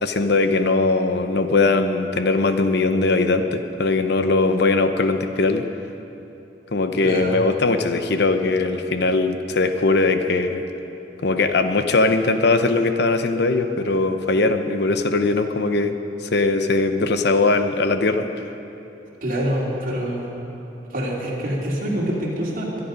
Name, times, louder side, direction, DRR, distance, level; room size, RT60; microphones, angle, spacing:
voice 1, 0.0-5.7 6.7-10.6 11.2-18.3, left 3 dB, 65° left, 8 dB, 0.8 m, -20 dB
voice 2, 7.0-7.4 19.2-20.3 20.9-22.8, equal, 50° right, -4 dB, 3.2 m, -25 dB
23.0 x 10.0 x 5.2 m, 2.9 s
head